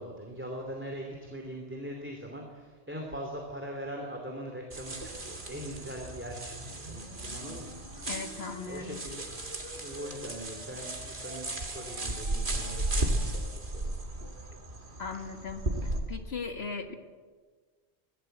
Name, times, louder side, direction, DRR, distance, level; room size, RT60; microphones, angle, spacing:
voice 1, 0.0-7.7 8.6-9.4 9.7-13.9, equal, 10° right, 1 dB, 2.7 m, -41 dB
sound 1, 4.7-16.0, right 2 dB, 50° right, 2.5 m, -35 dB
sound 2, 5.6-13.3, equal, 30° right, 6.4 m, -50 dB
voice 2, 8.1-9.0 15.0-15.6 16.1-17.0, left 4 dB, 65° left, 6 dB, 1.9 m, -38 dB
23.0 x 17.0 x 7.9 m, 1.5 s
omnidirectional pair, 1.1 m